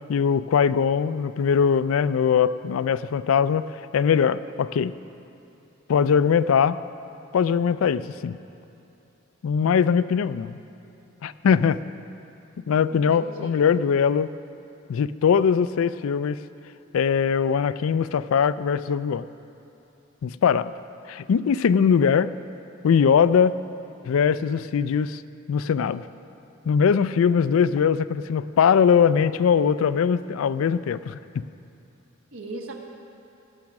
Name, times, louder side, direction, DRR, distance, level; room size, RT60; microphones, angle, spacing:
voice 1, 0.1-3.7 3.9-4.9 5.9-6.8 7.3-8.4 9.4-10.6 11.2-11.8 12.7-14.3 14.9-16.4 16.9-19.3 20.2-20.7 21.1-22.3 22.8-23.5 24.0-25.2 25.5-26.0 26.7-31.4, left 7 dB, 85° left, 15 dB, 0.4 m, -21 dB
voice 2, 12.9-13.6 32.3-32.8, right 2 dB, 85° right, 1 dB, 1.4 m, -38 dB
18.0 x 6.4 x 5.9 m, 2.8 s
head